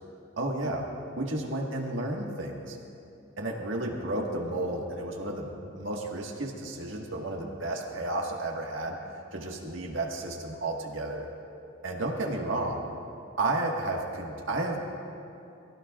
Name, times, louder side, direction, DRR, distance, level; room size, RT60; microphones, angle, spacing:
voice 1, 0.4-0.9 1.2-2.8 3.4-9.0 9.3-11.3 11.8-12.8 13.4-14.8, right 2 dB, 70° right, 0 dB, 1.6 m, -32 dB
22.0 x 15.5 x 2.5 m, 2.6 s
head